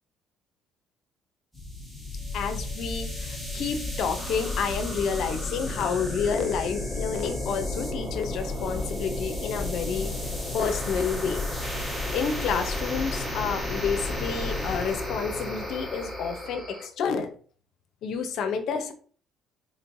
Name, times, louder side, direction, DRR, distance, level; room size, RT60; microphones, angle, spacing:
sound 1, 1.5-16.9, left 2 dB, 5° right, 1.3 m, -32 dB
voice 1, 2.3-10.1 10.5-11.4 11.9-17.3 18.0-18.9, left 6 dB, 60° left, 8 dB, 0.7 m, -29 dB
4.2 x 3.1 x 2.6 m, 0.43 s
cardioid pair, 125°, 0 cm